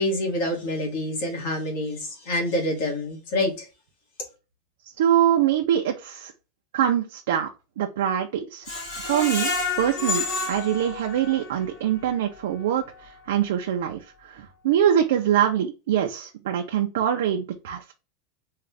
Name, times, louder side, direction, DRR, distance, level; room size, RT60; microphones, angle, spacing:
voice 1, 0.0-3.7, left 1 dB, 55° left, 1.6 m, -27 dB
voice 2, 5.0-6.3 6.7-7.5 7.8-8.7 9.0-9.5 9.8-17.9, right 10 dB, 80° right, 0.5 m, -24 dB
Screech, 8.7-11.6 12.1-12.2 12.6-12.7, left 3 dB, 35° left, 1.6 m, -29 dB
3.7 x 2.4 x 3.3 m
supercardioid pair, 175°, 0 cm